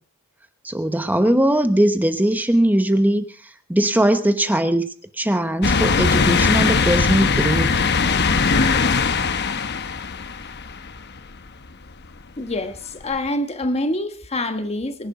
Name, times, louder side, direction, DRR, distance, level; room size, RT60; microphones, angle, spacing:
voice 1, 0.6-3.2 3.7-4.9 5.2-7.8, right 1 dB, 10° right, 8 dB, 1.1 m, -19 dB
sound 1, 5.6-11.2 11.7-11.8 13.1-13.2, left 4 dB, 50° left, 1.0 m, -20 dB
voice 2, 12.4-15.1, left 1 dB, 30° left, 9 dB, 1.4 m, -26 dB
23.5 x 11.0 x 5.0 m, 0.42 s
head